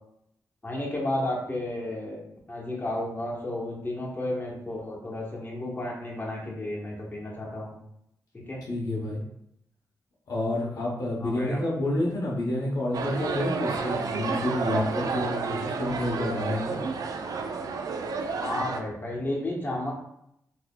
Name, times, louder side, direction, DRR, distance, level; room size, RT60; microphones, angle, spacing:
voice 1, 0.6-2.2 2.5-7.8 8.3-8.6 11.2-11.6 18.4-19.9, left 1 dB, 30° left, -3 dB, 1.1 m, -32 dB
voice 2, 8.7-9.2 10.3-16.8, left 1 dB, 65° left, -4 dB, 0.9 m, -29 dB
sound 1, 12.9-18.8, right 4 dB, 65° right, 0.4 m, -31 dB
3.8 x 2.8 x 2.2 m, 0.76 s
cardioid pair, 60°, 7 cm